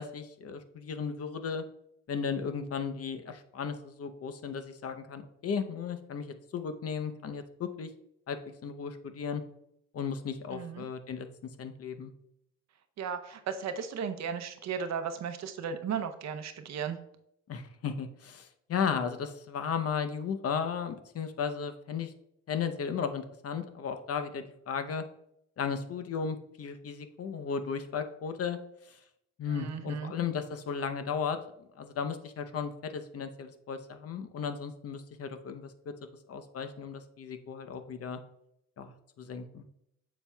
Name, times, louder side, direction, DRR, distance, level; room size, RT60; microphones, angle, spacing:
voice 1, 0.0-1.6 2.1-7.9 8.3-9.4 9.9-11.3 11.6-12.1 17.5-22.1 22.5-25.0 25.6-28.6 28.9-29.0 29.4-31.4 31.8-35.9 36.3-38.2 38.8-39.6, left 6 dB, 50° left, 8 dB, 0.7 m, -35 dB
voice 2, 10.5-10.9 13.0-17.0 29.5-30.1, right 7 dB, 60° right, 8 dB, 0.7 m, -35 dB
7.3 x 7.0 x 2.3 m, 0.77 s
cardioid pair, 90°, 30 cm